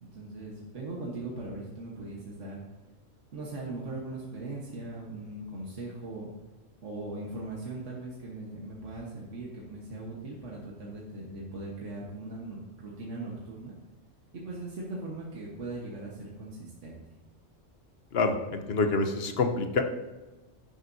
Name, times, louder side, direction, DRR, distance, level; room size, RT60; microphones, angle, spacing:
voice 1, 0.0-2.6 3.3-6.3 6.8-13.7 14.3-17.0, right 2 dB, 80° right, -3 dB, 1.7 m, -39 dB
voice 2, 18.1-19.8, left 3 dB, 60° left, 6 dB, 1.1 m, -27 dB
11.0 x 10.5 x 2.7 m, 1.2 s
omnidirectional pair, 1.2 m